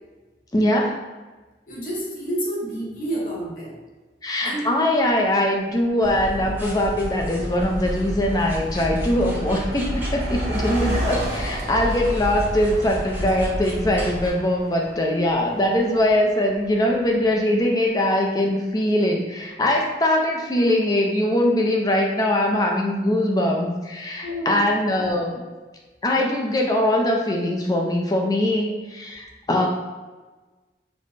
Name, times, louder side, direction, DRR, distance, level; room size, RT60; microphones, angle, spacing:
voice 1, 0.5-1.0 4.2-25.4 26.0-29.7, left 1 dB, 20° left, 0 dB, 0.4 m, -22 dB
voice 2, 1.7-3.8 4.4-4.7 24.2-24.7, right 1 dB, 50° left, -5 dB, 1.0 m, -29 dB
Car passing by, 5.8-5.9 6.7-6.9 7.2-17.6, equal, 65° right, 0.8 m, -34 dB
sound 1, 6.0-14.3, equal, 10° right, 0.8 m, -30 dB
4.1 x 2.0 x 3.2 m, 1.2 s
head